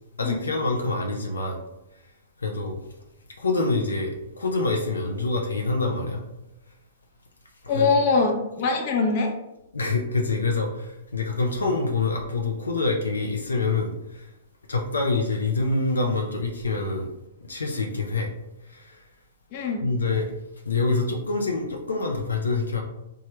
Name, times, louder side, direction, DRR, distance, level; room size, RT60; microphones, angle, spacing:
voice 1, 0.2-1.6 2.4-2.8 3.4-6.2 7.7-7.9 9.7-14.3 14.7-17.1 17.5-18.3 18.7-19.0 19.8-20.3 20.7-22.8, left 3 dB, 90° left, 1 dB, 0.5 m, -26 dB
voice 2, 7.7-9.3 19.5-19.9, left 4 dB, 45° left, 2 dB, 0.6 m, -23 dB
3.1 x 2.2 x 2.9 m, 0.90 s
hypercardioid pair, 120°, 0 cm